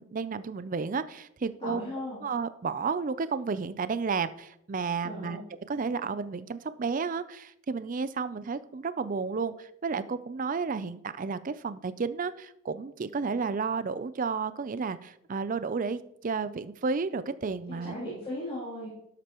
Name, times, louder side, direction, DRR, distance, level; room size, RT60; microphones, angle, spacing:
voice 1, 0.0-1.8 2.2-5.4 5.7-17.9, right 5 dB, 40° right, 14 dB, 0.4 m, -32 dB
voice 2, 1.6-2.2 5.0-5.4 17.7-18.9, left 1 dB, 25° left, -10 dB, 3.0 m, -37 dB
12.0 x 8.0 x 3.0 m, 0.79 s
head